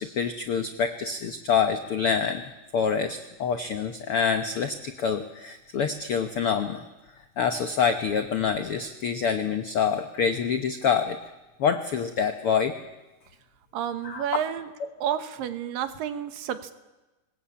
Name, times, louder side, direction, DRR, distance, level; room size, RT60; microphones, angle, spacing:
voice 1, 0.0-2.4 2.7-6.8 7.4-11.2 11.6-12.7 14.0-14.3 14.8-14.9, left 6 dB, 80° left, 8 dB, 1.2 m, -26 dB
voice 2, 13.7-14.7 15.0-16.7, right 9 dB, 75° right, 10 dB, 2.8 m, -30 dB
24.5 x 20.5 x 8.6 m, 1.1 s
omnidirectional pair, 4.1 m